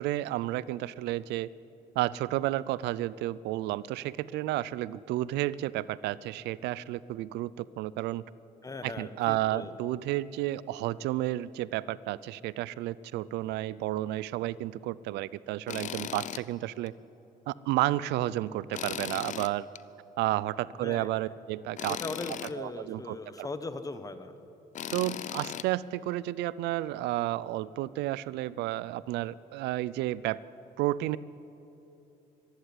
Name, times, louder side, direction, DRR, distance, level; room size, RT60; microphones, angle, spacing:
voice 1, 0.0-1.5 2.0-8.2 8.8-16.9 17.5-19.7 20.2-22.0 22.6-23.5 24.9-30.4 30.8-31.2, right 15 dB, 85° right, 20 dB, 0.5 m, -31 dB
voice 2, 8.6-9.7 20.8-21.1 21.9-24.3, left 3 dB, 20° left, 10 dB, 1.3 m, -39 dB
Tools, 15.7-16.4 16.9-17.0 18.7-19.8 21.8-22.5 24.7-25.7, left 10 dB, 45° left, 0.6 m, -37 dB
25.5 x 11.5 x 9.7 m, 3.0 s
cardioid pair, 110°, 17 cm